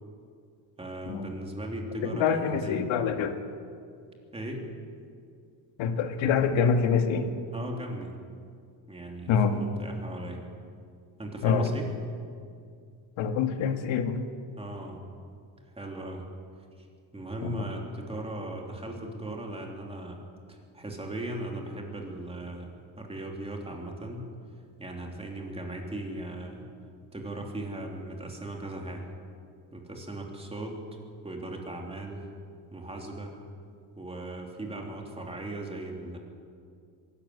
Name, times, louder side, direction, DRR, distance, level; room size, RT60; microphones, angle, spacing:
voice 1, 0.8-2.8 4.3-4.6 7.5-8.1 8.9-10.4 11.2-11.9 14.6-15.0 15.7-16.3 16.8-16.9 17.1-20.2 20.5-24.3 24.8-26.6 27.1-29.1 29.7-30.8 31.2-32.2 32.7-33.4 34.0-36.2, right 1 dB, 15° right, 1 dB, 3.3 m, -38 dB
voice 2, 2.0-3.4 5.8-7.3 9.3-9.6 11.4-11.8 13.2-14.3 17.4-17.6, left 6 dB, 80° left, 7 dB, 2.0 m, -26 dB
22.5 x 14.0 x 9.8 m, 2.3 s
cardioid pair, 145°, 45 cm